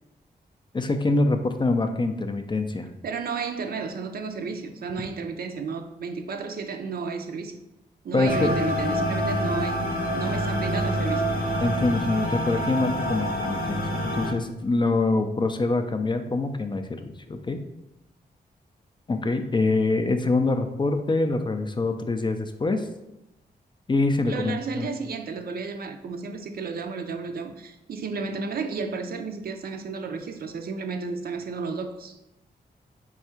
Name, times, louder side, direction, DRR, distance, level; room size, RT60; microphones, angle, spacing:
voice 1, 0.7-2.9 8.1-8.6 11.6-17.6 19.1-22.9 23.9-24.9, left 2 dB, 30° left, 7 dB, 0.4 m, -25 dB
voice 2, 3.0-7.6 8.0-9.9 10.1-11.3 24.3-32.2, right 4 dB, 65° right, 5 dB, 0.4 m, -32 dB
sound 1, 8.2-14.3, equal, 60° left, 0.7 m, -26 dB
3.5 x 2.3 x 4.3 m, 0.90 s
cardioid pair, 65°, 17 cm